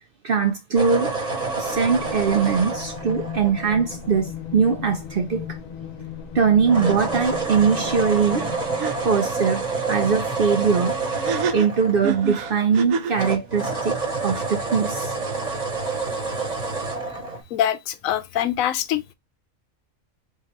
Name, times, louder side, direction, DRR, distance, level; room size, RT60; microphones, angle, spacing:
voice 1, 0.2-1.1 1.6-5.6 6.3-8.5 9.0-11.0 11.5-14.0 14.2-15.1, right 6 dB, 60° right, 0.6 m, -21 dB
sound 1, 0.7-4.2 6.6-12.8 13.1-17.4, right 3 dB, 30° right, 1.1 m, -28 dB
sound 2, 1.6-9.2, left 8 dB, 60° left, 0.4 m, -37 dB
sound 3, 8.4-8.5 8.8-8.9 11.1-13.2, right 6 dB, 75° right, 1.0 m, -28 dB
voice 2, 17.5-19.1, left 11 dB, 80° left, 1.0 m, -24 dB
3.7 x 3.7 x 3.0 m
omnidirectional pair, 1.4 m